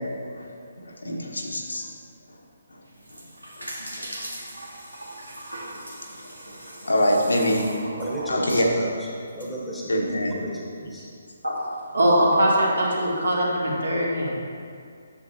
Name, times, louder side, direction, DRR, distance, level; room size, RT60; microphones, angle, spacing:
voice 1, 0.8-1.9 3.1-3.2 3.6-3.7 4.0-4.1 5.7-5.8 6.1-6.2 6.5-6.6 6.8-7.7 8.3-8.7 9.9-10.4, left 1 dB, 75° left, 0 dB, 1.2 m, -25 dB
sound 1, 2.9-9.5, right 1 dB, 85° right, 1.5 m, -38 dB
voice 2, 8.0-11.1, equal, ahead, -7 dB, 1.1 m, -34 dB
voice 3, 11.9-14.3, equal, 70° right, -4 dB, 2.0 m, -21 dB
9.7 x 7.1 x 2.7 m, 2.2 s
figure-of-eight pair, 140°, 0 cm